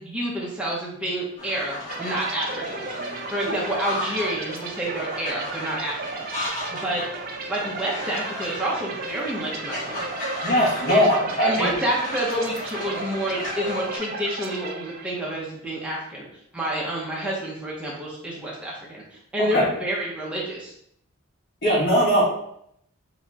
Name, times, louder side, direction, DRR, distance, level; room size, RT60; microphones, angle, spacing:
voice 1, 0.0-6.3 6.7-7.0 7.5-10.0 10.9-16.3 16.5-19.0 19.3-20.7, right 1 dB, 5° right, -5 dB, 0.7 m, -29 dB
sound 1, 1.4-14.0, left 1 dB, 35° left, 1.3 m, -35 dB
sound 2, 1.9-15.4, right 3 dB, 40° right, 0.4 m, -35 dB
voice 2, 10.4-11.7 19.4-19.7 21.6-22.2, equal, 50° left, -5 dB, 1.7 m, -20 dB
4.2 x 4.1 x 2.4 m, 0.71 s
head